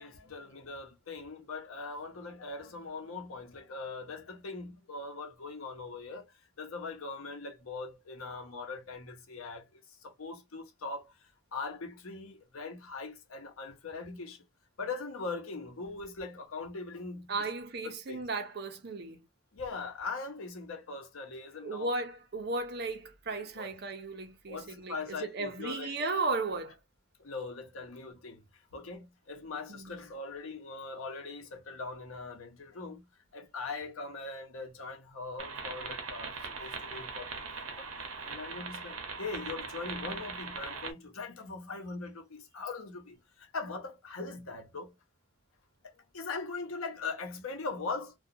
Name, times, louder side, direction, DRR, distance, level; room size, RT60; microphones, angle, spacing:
voice 1, 0.0-14.4 14.8-17.5 18.1-18.2 19.5-21.9 23.3-23.7 24.5-26.1 27.2-33.0 33.3-37.9 38.2-44.9 45.8-48.1, left 3 dB, 85° left, 0.7 m, -41 dB
voice 2, 17.3-19.2 21.6-26.8 29.7-30.0, right 3 dB, 50° right, 0.6 m, -35 dB
sound 1, 35.4-40.9, right 4 dB, 85° right, 0.7 m, -40 dB
2.4 x 2.2 x 2.7 m
head